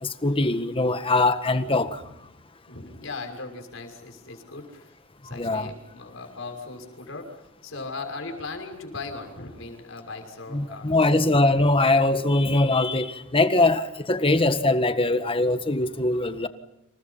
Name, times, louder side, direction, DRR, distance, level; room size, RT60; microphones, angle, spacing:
voice 1, 0.0-2.0 5.2-5.7 10.5-16.5, left 2 dB, 25° left, 1.6 m, -22 dB
voice 2, 2.7-4.9 5.2-7.3 7.6-10.9, left 3 dB, 65° left, 6.0 m, -38 dB
30.0 x 27.5 x 5.6 m
head